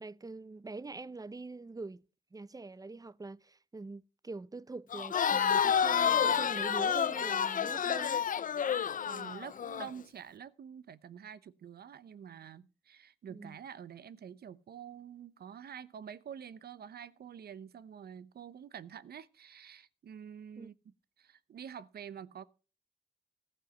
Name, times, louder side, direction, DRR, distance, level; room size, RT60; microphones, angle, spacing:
voice 1, 0.0-2.0 2.3-8.2 13.3-13.6 20.6-20.7, right 3 dB, 20° right, 0.5 m, -44 dB
Crowd, 4.9-9.9, left 8 dB, 50° left, 0.5 m, -29 dB
voice 2, 8.7-22.4, right 8 dB, 65° right, 0.8 m, -48 dB
15.0 x 5.5 x 6.8 m
cardioid pair, 60°, 17 cm